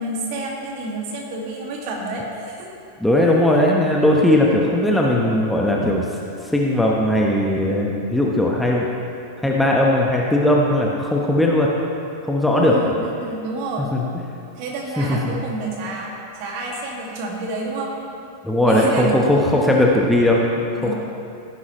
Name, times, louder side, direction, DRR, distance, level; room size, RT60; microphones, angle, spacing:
voice 1, 0.0-2.7 12.5-13.9 14.5-17.9 18.6-20.0 20.8-20.9, right 2 dB, 45° right, -1 dB, 2.2 m, -29 dB
voice 2, 3.0-6.1 6.4-8.9 9.4-11.7 12.2-12.8 13.9-14.0 15.0-15.4 18.4-20.9, left 1 dB, 5° left, -2 dB, 1.1 m, -18 dB
16.5 x 9.9 x 3.2 m, 2.6 s
figure-of-eight pair, 90°, 0 cm